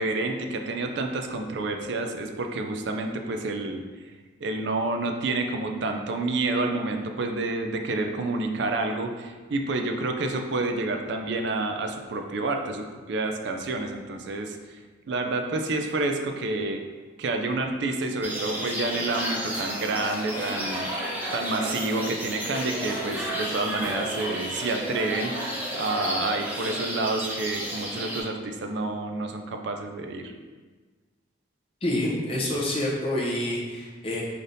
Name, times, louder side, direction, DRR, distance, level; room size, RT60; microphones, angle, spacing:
voice 1, 0.0-3.8 4.4-14.6 15.1-16.8 17.2-20.9 21.3-25.3 25.8-30.3, right 2 dB, 65° right, 4 dB, 0.4 m, -29 dB
sound 1, 18.2-28.2, equal, 10° right, 0.5 m, -32 dB
voice 2, 31.8-34.2, left 1 dB, 30° left, -4 dB, 0.7 m, -27 dB
4.0 x 3.3 x 2.6 m, 1.4 s
head